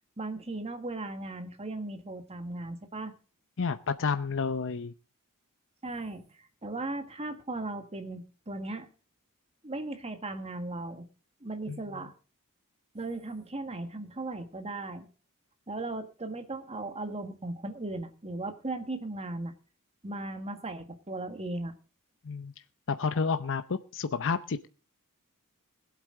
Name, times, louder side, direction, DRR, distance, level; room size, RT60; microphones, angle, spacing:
voice 1, 0.2-3.1 5.8-8.9 9.6-11.1 11.4-12.1 12.9-15.1 15.7-19.5 20.0-21.7, right 2 dB, 30° right, 8 dB, 1.7 m, -37 dB
voice 2, 3.6-4.9 11.7-11.8 22.2-22.5 22.9-24.7, left 5 dB, 60° left, 10 dB, 0.7 m, -30 dB
20.5 x 8.3 x 3.8 m, 0.37 s
head